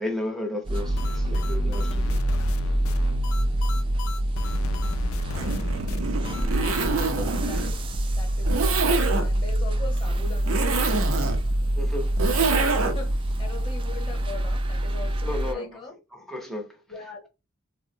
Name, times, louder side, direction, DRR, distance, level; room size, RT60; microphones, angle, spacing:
voice 1, 0.0-2.2 6.5-6.7 11.8-12.1 15.2-15.8 16.1-16.8, left 1 dB, ahead, 0.7 m, -33 dB
sound 1, 0.7-7.1, left 1 dB, 80° left, 0.4 m, -34 dB
sound 2, 0.7-15.5, right 1 dB, 25° right, 0.3 m, -26 dB
Zipper (clothing), 5.2-13.2, right 3 dB, 75° right, 0.6 m, -26 dB
voice 2, 7.0-7.8 8.2-11.1 11.7-11.8 12.2-16.0 16.9-17.3, left 3 dB, 25° left, 0.9 m, -41 dB
3.5 x 2.1 x 2.6 m
head